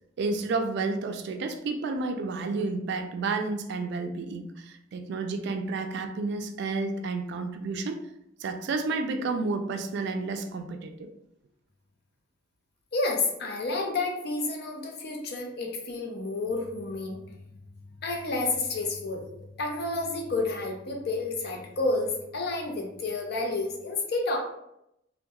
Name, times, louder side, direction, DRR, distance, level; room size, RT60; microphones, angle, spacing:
voice 1, 0.2-8.0 8.4-10.9, right 3 dB, 65° right, 7 dB, 0.3 m, -31 dB
voice 2, 12.9-17.6 17.9-24.4, left 3 dB, 60° left, 1 dB, 0.5 m, -30 dB
2.2 x 2.1 x 2.8 m, 0.80 s
head